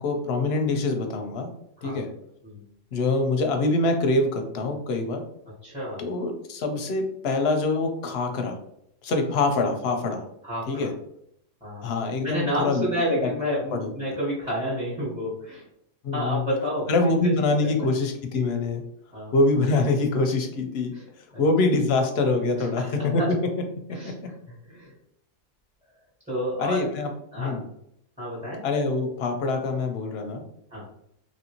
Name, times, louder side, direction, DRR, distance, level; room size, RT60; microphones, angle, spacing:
voice 1, 0.0-1.5 1.8-2.1 2.9-5.2 6.0-8.6 9.0-10.2 10.7-10.9 11.8-13.2 13.7-13.9 16.0-16.4 16.9-18.8 19.3-23.2 24.0-24.1 26.6-27.1 27.4-27.6 28.6-30.4, left 3 dB, 65° left, 4 dB, 0.8 m, -24 dB
voice 2, 5.6-6.0 10.4-10.9 11.6-11.9 12.2-15.7 16.1-17.3 17.8-17.9 19.1-19.3 20.9-21.0 21.3-21.4 22.6-22.9 23.2-23.3 23.9-24.9 26.3-27.6 28.2-28.6 30.7-30.8, equal, 5° right, -7 dB, 1.0 m, -30 dB
3.0 x 2.6 x 2.8 m, 0.74 s
omnidirectional pair, 1.3 m